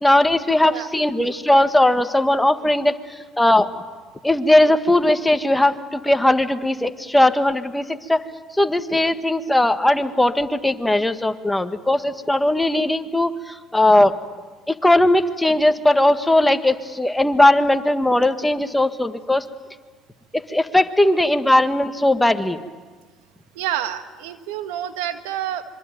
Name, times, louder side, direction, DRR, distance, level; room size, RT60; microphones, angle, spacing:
voice 1, 0.0-3.7 4.2-8.2 8.5-14.1 14.7-19.4 20.3-22.6, left 1 dB, 10° left, 8 dB, 1.7 m, -18 dB
voice 2, 23.5-25.6, right 11 dB, 85° right, 8 dB, 1.7 m, -28 dB
26.0 x 24.0 x 9.3 m, 1.4 s
supercardioid pair, 75°, 0 cm